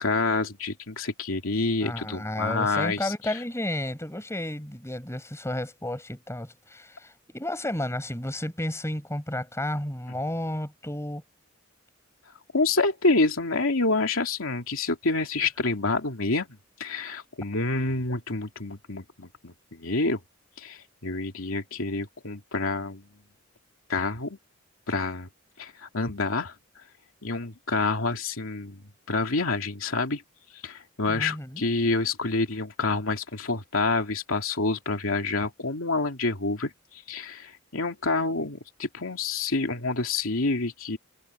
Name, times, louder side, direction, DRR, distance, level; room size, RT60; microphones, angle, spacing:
voice 1, 0.0-3.4 12.5-20.2 20.6-23.0 23.9-24.4 24.9-25.3 25.6-26.5 27.2-30.2 30.6-41.0, left 3 dB, 75° left, 2.8 m, -28 dB
voice 2, 1.8-11.2 31.1-31.6, left 1 dB, 15° left, 4.8 m, -32 dB
head